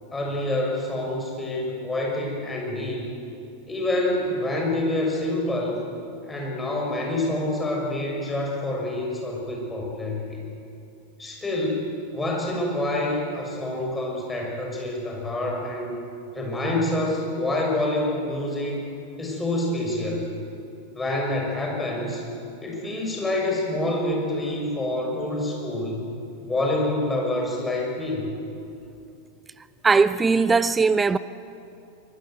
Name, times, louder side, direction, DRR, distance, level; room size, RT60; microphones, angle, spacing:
voice 1, 0.1-3.1 3.7-5.8 6.3-10.4 11.2-15.9 16.3-18.8 19.2-20.2 20.9-22.2 22.6-26.0 26.4-28.3, left 1 dB, 10° left, 6.4 m, -27 dB
voice 2, 29.8-31.2, right 4 dB, 15° right, 0.6 m, -19 dB
24.0 x 21.0 x 8.0 m
figure-of-eight pair, 90°, 0 cm